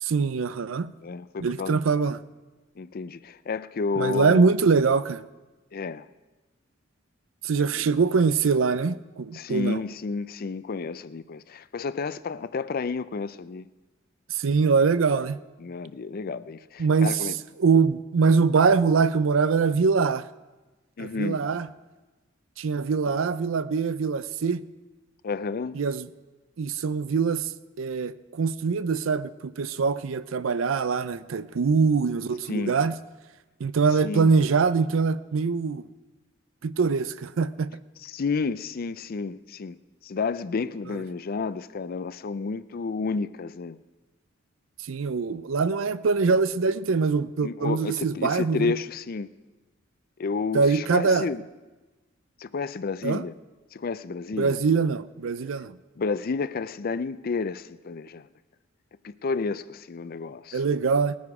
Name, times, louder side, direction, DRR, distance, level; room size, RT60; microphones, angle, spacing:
voice 1, 0.0-0.9 1.4-2.2 4.0-5.2 7.4-9.8 14.3-15.4 16.8-17.2 17.6-20.3 21.0-21.7 22.6-24.6 25.8-26.1 26.6-27.5 27.8-32.9 33.6-35.8 36.6-37.7 44.9-48.7 50.5-51.3 53.0-53.2 54.4-55.8 60.5-61.2, right 5 dB, 75° right, 0.5 m, -23 dB
voice 2, 1.0-1.8 2.8-4.5 5.7-6.1 7.6-7.9 9.3-13.7 15.6-17.4 21.0-21.4 25.2-25.8 32.5-32.8 34.0-34.3 38.0-39.8 40.0-43.8 47.4-49.3 50.2-51.4 52.4-53.3 53.7-54.6 56.0-58.3 59.0-60.6, left 4 dB, 50° left, 0.4 m, -31 dB
19.5 x 9.4 x 4.8 m
head